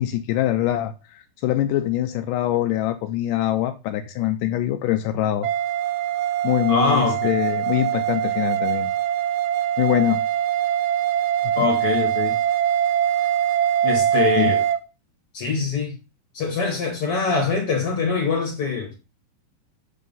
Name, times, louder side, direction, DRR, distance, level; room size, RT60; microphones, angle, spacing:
voice 1, 0.0-5.5 6.4-8.9 9.8-10.2 11.6-11.7 14.4-14.5, left 13 dB, 80° left, 2.0 m, -23 dB
sound 1, 5.4-14.8, right 10 dB, 80° right, 2.1 m, -23 dB
voice 2, 6.7-7.3 11.6-12.3 13.8-14.6 15.3-15.9 16.3-18.9, left 4 dB, 50° left, 2.1 m, -23 dB
7.8 x 3.7 x 5.3 m
omnidirectional pair, 4.0 m